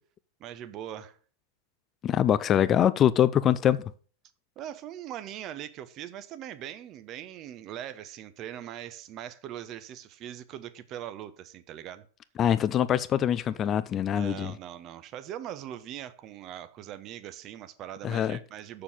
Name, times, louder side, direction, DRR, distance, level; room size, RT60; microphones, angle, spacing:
voice 1, 0.4-1.2 4.6-12.1 14.0-18.8, right 11 dB, 35° right, 0.9 m, -41 dB
voice 2, 2.0-3.8 12.4-14.5 18.0-18.4, left 10 dB, 30° left, 0.5 m, -24 dB
7.2 x 6.8 x 7.4 m
figure-of-eight pair, 90°, 0 cm